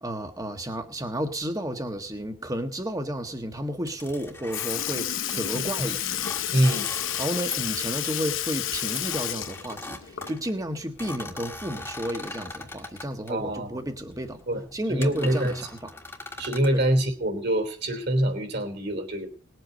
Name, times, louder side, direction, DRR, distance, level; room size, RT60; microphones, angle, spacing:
voice 1, 0.0-6.0 7.2-14.4 14.7-15.7 16.7-16.8, equal, 15° right, 6 dB, 1.5 m, -32 dB
sound 1, 3.9-5.4 6.0-7.7 8.0-8.2 8.8-13.3 14.1-14.3 14.7-14.8 15.0-16.7, left 2 dB, 10° left, 1.5 m, -40 dB
Sink (filling or washing) / Liquid, 4.1-4.2 4.5-10.6 11.0-11.1 12.6-12.7 13.6-13.7 14.6-14.8 15.6-15.7, left 11 dB, 70° left, 0.9 m, -31 dB
voice 2, 6.5-6.9 13.3-13.8 14.5-14.6 14.9-15.5 16.4-19.3, right 1 dB, 50° right, 6 dB, 3.1 m, -25 dB
19.5 x 8.0 x 5.3 m, 0.39 s
head